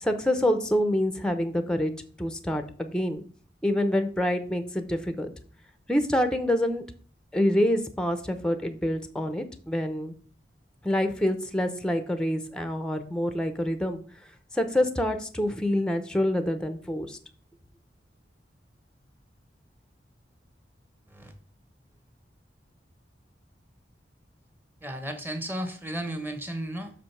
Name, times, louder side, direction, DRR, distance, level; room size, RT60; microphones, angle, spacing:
voice 1, 0.0-1.9 2.2-3.2 3.6-5.3 5.9-6.8 7.3-10.1 10.8-14.0 14.5-17.2, left 1 dB, 5° left, 8 dB, 0.8 m, -26 dB
voice 2, 24.8-26.9, right 1 dB, 10° right, 6 dB, 1.3 m, -34 dB
6.4 x 5.0 x 5.7 m, 0.43 s
head